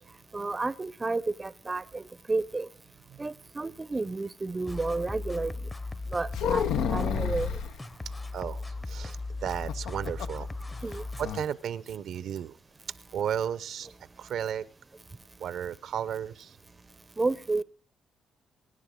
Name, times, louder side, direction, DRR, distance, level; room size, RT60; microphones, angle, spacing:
voice 1, 0.3-2.7 3.2-5.5 6.1-7.6 10.8-11.0 17.2-17.6, right 3 dB, 25° right, 16 dB, 0.6 m, -31 dB
sound 1, 4.7-11.3, left 2 dB, 20° left, 0.9 m, -37 dB
sound 2, 6.3-7.8 9.5-10.4 10.7-10.8 11.2-11.5, left 8 dB, 85° left, 0.8 m, -30 dB
voice 2, 8.3-10.5 11.2-12.6 13.1-13.9 14.2-14.7 15.4-16.6, right 9 dB, 70° right, 16 dB, 0.7 m, -34 dB
23.5 x 10.5 x 3.7 m, 0.40 s
cardioid pair, 90°, 0 cm